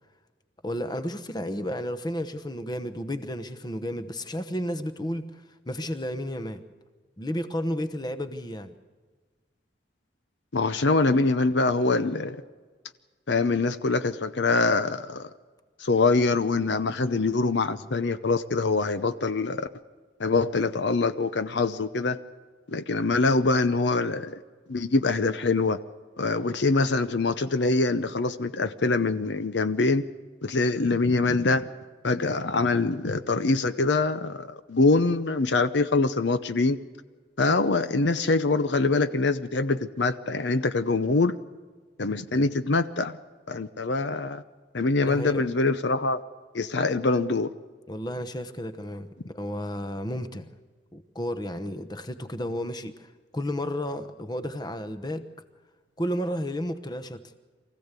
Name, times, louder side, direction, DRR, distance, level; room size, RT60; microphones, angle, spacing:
voice 1, 0.6-6.6 7.2-8.7 45.1-45.4 47.9-50.5 50.9-55.2 56.0-57.2, equal, 20° left, 1.0 m, -32 dB
voice 2, 10.5-12.4 13.3-15.3 15.8-19.7 20.2-22.2 22.7-24.4 24.7-25.8 26.2-30.0 30.4-31.7 32.0-36.8 37.4-41.4 42.0-43.2 43.5-44.4 44.7-46.2 46.5-47.5, left 3 dB, 65° left, 0.7 m, -24 dB
24.0 x 15.5 x 8.2 m
head